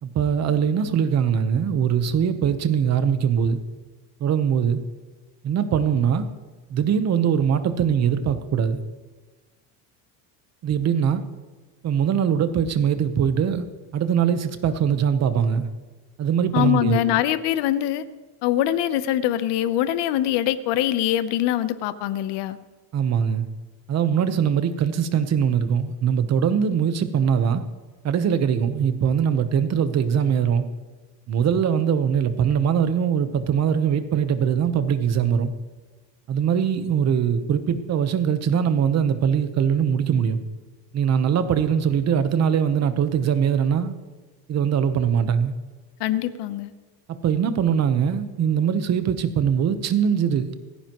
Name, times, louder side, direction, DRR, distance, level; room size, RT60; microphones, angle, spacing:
voice 1, 0.0-3.6 4.2-4.8 5.4-6.3 6.7-8.8 10.6-11.2 11.8-13.7 13.9-15.7 16.2-17.2 22.9-23.5 23.9-27.6 28.0-30.6 31.3-35.5 36.3-40.4 40.9-43.9 44.5-45.5 47.1-50.5, right 8 dB, 35° right, 10 dB, 1.0 m, -22 dB
voice 2, 16.5-18.0 18.4-22.6 46.0-46.7, left 12 dB, 60° left, 13 dB, 0.9 m, -23 dB
28.0 x 10.0 x 3.0 m, 1.3 s
cardioid pair, 155°, 48 cm